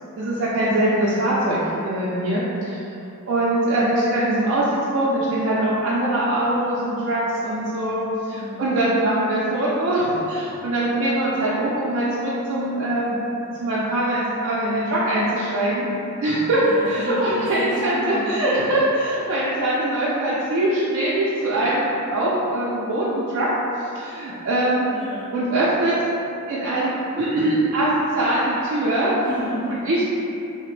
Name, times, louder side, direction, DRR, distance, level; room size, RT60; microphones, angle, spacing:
voice 1, 0.2-2.8 3.3-4.7 4.9-13.2 13.6-15.9 16.2-23.5 23.8-24.9 25.3-26.1 26.5-29.1 29.8-30.0, right 1 dB, 55° right, -8 dB, 0.4 m, -22 dB
voice 2, 0.7-1.1 8.3-8.6 16.6-18.7 24.9-25.3 29.1-29.9, left 1 dB, 20° left, -11 dB, 0.4 m, -31 dB
2.8 x 2.0 x 3.0 m, 2.8 s
head